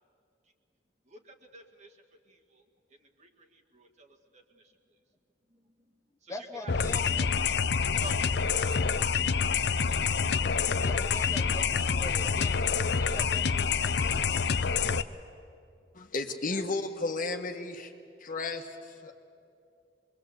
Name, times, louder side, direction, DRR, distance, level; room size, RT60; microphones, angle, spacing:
voice 1, 1.1-2.6 2.9-4.7 5.5-5.6 6.2-7.6 7.9-10.0, right 2 dB, 40° right, 2 dB, 2.0 m, -51 dB
voice 2, 6.3-7.3 10.8-14.3, left 2 dB, 15° left, 4 dB, 1.1 m, -43 dB
sound 1, 6.7-15.0, left 5 dB, 70° left, 0.7 m, -27 dB
voice 3, 15.9-17.9 18.2-19.1, left 3 dB, 50° left, 5 dB, 1.5 m, -33 dB
25.0 x 22.0 x 8.2 m, 2.4 s
head